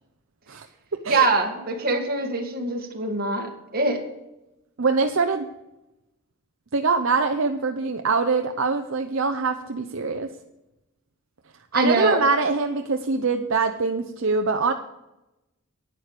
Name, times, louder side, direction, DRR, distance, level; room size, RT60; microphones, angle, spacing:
voice 1, 1.1-4.0 11.7-12.3, right 2 dB, 45° right, 2 dB, 1.9 m, -24 dB
voice 2, 4.8-5.5 6.7-10.3 11.7-14.7, right 4 dB, 65° right, 6 dB, 0.7 m, -23 dB
11.0 x 9.6 x 5.0 m, 0.94 s
head